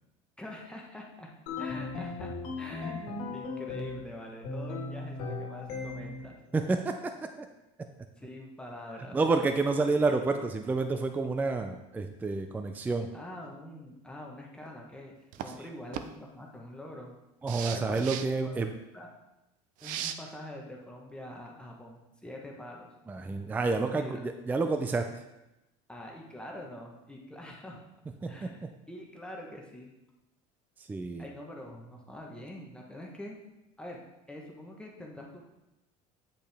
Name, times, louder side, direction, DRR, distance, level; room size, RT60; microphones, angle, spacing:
voice 1, 0.4-1.3 1.6-2.3 2.6-6.4 8.2-9.4 10.2-10.3 13.1-17.2 17.7-18.0 18.9-19.1 19.8-22.9 23.7-24.2 25.9-27.8 28.3-29.9 31.2-33.4 33.8-35.4, left 1 dB, 5° left, -1 dB, 1.0 m, -45 dB
sound 1, 1.5-4.1 4.4-6.3, left 3 dB, 85° left, 1.8 m, -37 dB
voice 2, 6.5-7.5 9.1-13.1 17.4-18.7 23.1-25.1 28.2-28.7 30.9-31.3, right 3 dB, 10° right, 7 dB, 0.4 m, -29 dB
sound 2, 15.3-15.6 15.9-16.1 17.5-18.3 19.8-20.1, right 10 dB, 60° right, 0.5 m, -37 dB
8.7 x 5.1 x 3.4 m, 0.94 s
cardioid pair, 135°, 15 cm